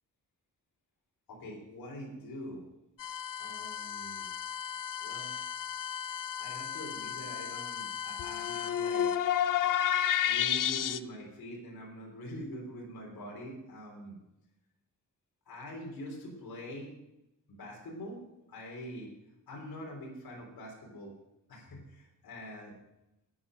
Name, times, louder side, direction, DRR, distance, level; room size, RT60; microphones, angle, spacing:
voice 1, 1.3-2.7 3.4-4.3 5.0-5.3 6.4-9.1 10.2-14.2 15.5-16.9 17.5-18.2 18.5-19.1 19.5-21.1 21.5-22.7, equal, 85° left, -1 dB, 3.6 m, -44 dB
sound 1, 3.0-11.0, left 10 dB, 65° left, 0.6 m, -32 dB
10.0 x 8.6 x 7.6 m, 0.91 s
cardioid pair, 105°, 35 cm